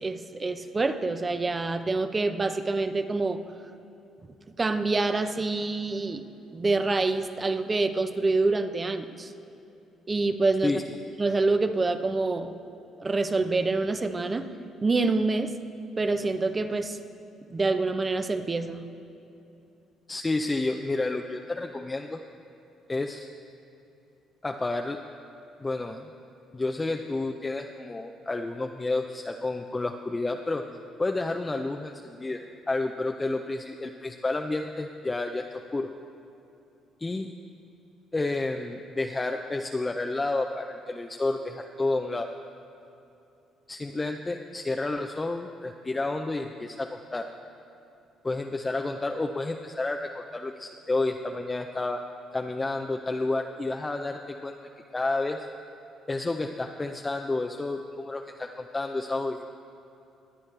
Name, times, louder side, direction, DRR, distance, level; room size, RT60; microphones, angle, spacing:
voice 1, 0.0-3.4 4.6-6.2 6.5-9.3 10.1-10.8 11.2-12.5 13.0-14.5 14.8-15.5 16.0-17.0 17.5-18.9, right 3 dB, 30° right, 9 dB, 0.7 m, -26 dB
voice 2, 20.1-22.2 22.9-23.3 24.4-25.0 25.6-26.1 26.5-30.6 31.0-35.9 37.0-37.3 38.1-42.3 43.7-47.3 48.2-52.0 52.3-54.5 54.9-55.5 56.1-59.5, left 2 dB, 20° left, 4 dB, 0.5 m, -30 dB
22.5 x 8.3 x 3.3 m, 2.8 s
supercardioid pair, 75°, 0 cm